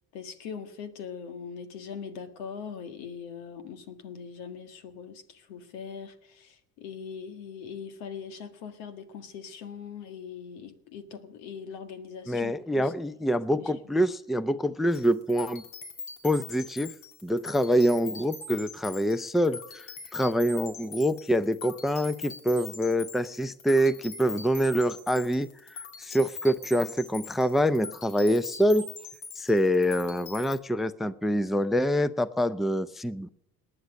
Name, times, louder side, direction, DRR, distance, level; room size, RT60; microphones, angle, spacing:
voice 1, 0.1-12.9 13.6-13.7, left 6 dB, 80° left, 9 dB, 1.9 m, -41 dB
voice 2, 12.3-15.6 16.2-16.9 17.2-19.9 20.1-25.5 26.0-28.9 29.4-33.3, equal, ahead, 16 dB, 0.6 m, -25 dB
sound 1, 14.9-30.6, left 4 dB, 60° left, 2.8 m, -43 dB
19.0 x 9.7 x 6.5 m, 0.79 s
hypercardioid pair, 65°, 47 cm